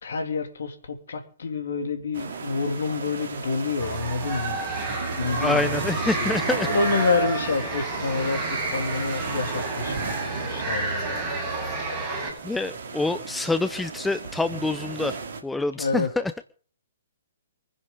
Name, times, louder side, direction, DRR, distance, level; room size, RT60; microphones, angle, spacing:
voice 1, 0.0-11.8 15.8-16.1, left 4 dB, 60° left, 7 dB, 3.1 m, -29 dB
sound 1, 2.1-15.4, right 5 dB, 55° right, 3.1 m, -35 dB
sound 2, 3.8-12.3, right 3 dB, 25° right, 7.7 m, -30 dB
voice 2, 5.4-6.7 11.3-11.5 12.4-16.3, left 2 dB, 5° left, 12 dB, 0.6 m, -27 dB
24.0 x 10.5 x 5.5 m, 0.44 s
figure-of-eight pair, 120°, 0 cm